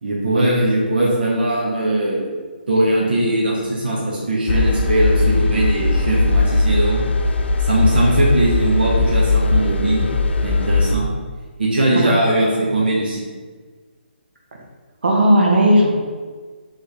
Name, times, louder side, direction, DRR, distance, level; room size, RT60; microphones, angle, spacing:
voice 1, 0.0-2.3 2.7-7.0 7.6-10.1 10.4-11.1 11.6-13.2, right 1 dB, 60° right, -5 dB, 1.0 m, -20 dB
sound 1, 4.5-11.0, left 3 dB, 85° left, 0.4 m, -18 dB
voice 2, 15.0-15.9, equal, 80° right, -2 dB, 1.2 m, -14 dB
4.2 x 3.2 x 3.3 m, 1.5 s
hypercardioid pair, 170°, 6 cm